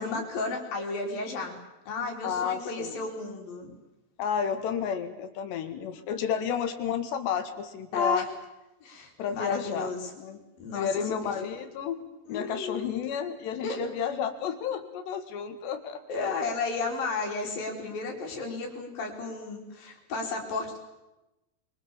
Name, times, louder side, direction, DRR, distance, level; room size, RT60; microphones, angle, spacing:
voice 1, 0.0-1.6 1.9-3.7 7.9-8.3 8.8-10.1 10.6-11.3 12.3-12.9 13.6-13.8 16.1-20.8, left 3 dB, 55° left, 1 dB, 5.1 m, -33 dB
voice 2, 2.2-3.1 4.2-8.3 9.2-10.4 10.7-12.0 12.3-16.3, left 7 dB, 75° left, 7 dB, 4.0 m, -31 dB
24.5 x 24.5 x 7.2 m, 0.99 s
omnidirectional pair, 5.0 m